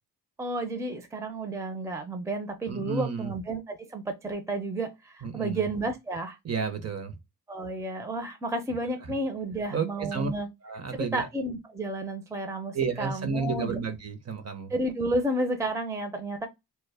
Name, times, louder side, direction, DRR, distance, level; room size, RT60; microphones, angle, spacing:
voice 1, 0.4-6.4 7.5-10.5 10.9-13.8 14.7-16.5, right 2 dB, 10° right, 0.6 m, -31 dB
voice 2, 2.7-3.3 5.2-5.7 6.4-7.2 9.0-9.2 9.7-10.3 10.6-11.3 12.7-14.7, right 5 dB, 40° right, 0.8 m, -32 dB
2.2 x 2.0 x 3.3 m
cardioid pair, 60°, 38 cm